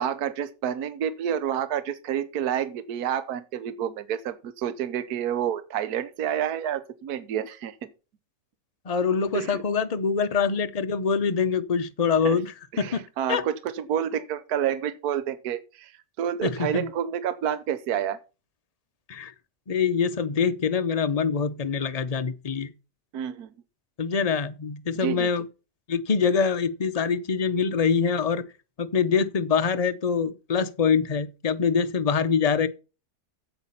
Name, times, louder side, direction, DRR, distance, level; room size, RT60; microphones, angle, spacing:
voice 1, 0.0-7.9 9.3-9.6 12.2-12.4 12.7-15.9 16.2-18.2 23.1-23.5 25.0-25.3, right 9 dB, 65° right, 1.4 m, -29 dB
voice 2, 8.9-13.0 13.3-13.4 16.4-16.9 19.1-19.3 19.7-22.7 24.0-25.5 25.9-28.4 28.8-32.7, left 6 dB, 50° left, 0.4 m, -24 dB
8.4 x 8.2 x 5.5 m
omnidirectional pair, 1.8 m